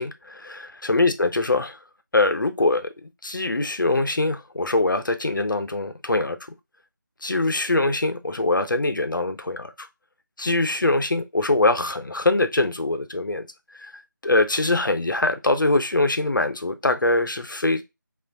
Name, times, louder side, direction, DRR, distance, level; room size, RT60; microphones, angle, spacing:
voice 1, 0.0-1.8 2.1-2.9 3.2-6.4 7.2-9.9 10.4-13.4 13.8-13.9 14.2-17.8, left 2 dB, 70° left, 0.7 m, -23 dB
3.2 x 2.5 x 3.7 m
figure-of-eight pair, 165°, 11 cm